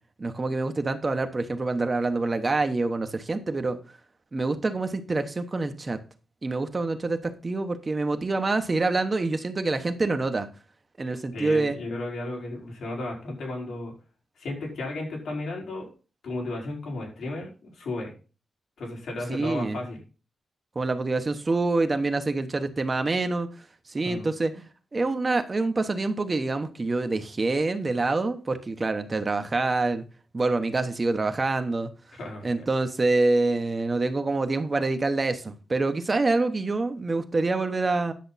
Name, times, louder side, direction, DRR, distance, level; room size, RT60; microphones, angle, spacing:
voice 1, 0.2-3.8 4.3-6.0 6.4-10.5 11.0-11.8 19.3-19.8 20.7-23.5 23.9-24.6 24.9-30.0 30.3-31.9 32.4-38.1, right 3 dB, 25° right, 1.0 m, -26 dB
voice 2, 11.3-13.9 14.4-15.9 16.2-18.1 18.8-20.0 24.0-24.3 32.2-32.7, left 2 dB, 80° left, 4.4 m, -34 dB
10.5 x 7.4 x 4.1 m
wide cardioid pair, 170°, 0 cm